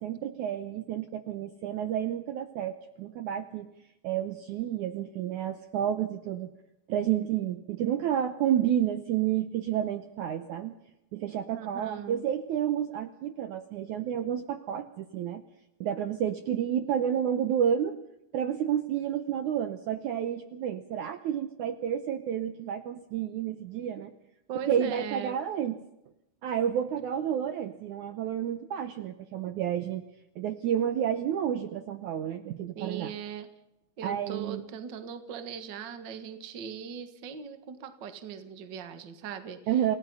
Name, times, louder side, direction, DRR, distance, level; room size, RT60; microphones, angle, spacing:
voice 1, 0.0-3.7 4.0-6.5 6.9-10.7 11.1-15.4 15.8-18.0 18.3-24.1 24.7-25.8 26.4-30.0 30.4-33.1 34.0-34.6 39.7-40.0, right 9 dB, 70° right, 9 dB, 2.0 m, -30 dB
voice 2, 11.5-12.2 24.5-25.4 32.7-33.5 34.0-39.6, right 7 dB, 45° right, 9 dB, 1.6 m, -39 dB
28.5 x 17.5 x 5.6 m, 0.87 s
omnidirectional pair, 4.3 m